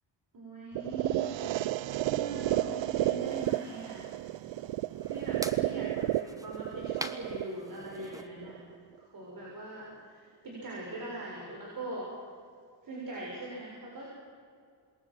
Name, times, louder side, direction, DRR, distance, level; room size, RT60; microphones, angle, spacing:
voice 1, 0.3-1.3 2.0-4.0 5.1-8.6 9.0-12.1 12.8-14.0, right 2 dB, 50° right, -3 dB, 7.0 m, -41 dB
sound 1, 0.7-8.7, right 15 dB, 90° right, 0.6 m, -32 dB
sound 2, 3.1-8.3, right 1 dB, 10° right, 1.3 m, -46 dB
27.5 x 21.5 x 7.9 m, 2.2 s
wide cardioid pair, 150°, 43 cm